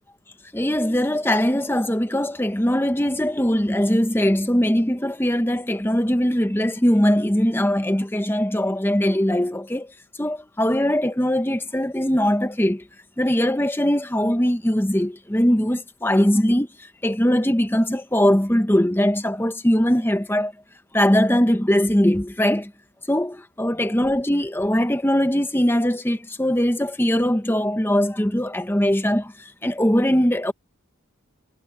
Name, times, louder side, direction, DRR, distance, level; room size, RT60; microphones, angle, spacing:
voice 1, 0.5-9.9 10.2-12.8 13.2-20.5 20.9-22.7 23.1-30.5, equal, 10° left, 0.9 m, -21 dB
head